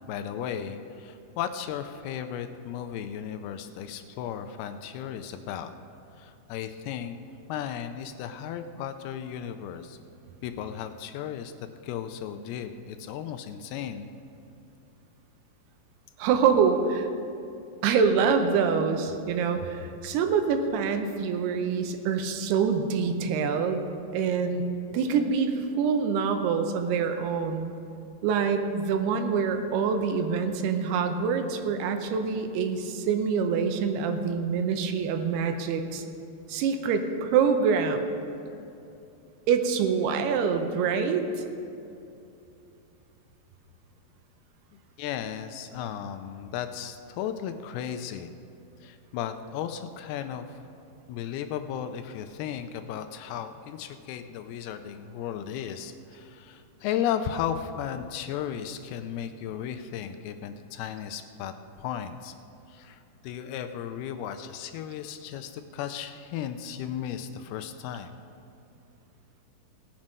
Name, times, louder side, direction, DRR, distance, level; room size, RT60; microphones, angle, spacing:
voice 1, 0.1-5.7 6.2-7.2 7.5-10.0 10.4-11.5 11.8-14.1 45.0-48.3 48.8-50.6 51.1-61.5 61.8-62.3 62.7-68.1, left 9 dB, 80° left, 8 dB, 2.4 m, -35 dB
voice 2, 16.2-17.1 17.8-23.8 24.1-24.6 24.9-27.7 28.2-36.0 36.5-38.0 39.5-41.4, right 6 dB, 85° right, 6 dB, 2.7 m, -25 dB
18.0 x 7.4 x 5.3 m, 2.7 s
omnidirectional pair, 4.7 m